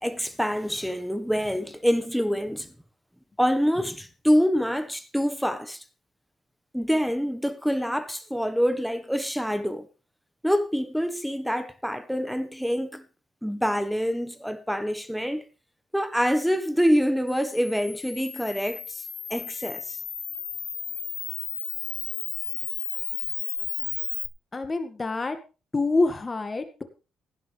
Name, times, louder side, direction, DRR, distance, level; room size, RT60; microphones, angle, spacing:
voice 1, 0.0-2.7 3.4-5.8 6.7-9.9 10.4-13.0 13.4-15.4 15.9-19.0 19.3-20.0, equal, ahead, 1.4 m, -26 dB
Camera, 17.3-24.3, left 7 dB, 55° left, 1.3 m, -33 dB
voice 2, 24.5-25.4 25.7-26.8, left 3 dB, 30° left, 2.0 m, -26 dB
16.0 x 11.0 x 3.5 m
cardioid pair, 75°, 0 cm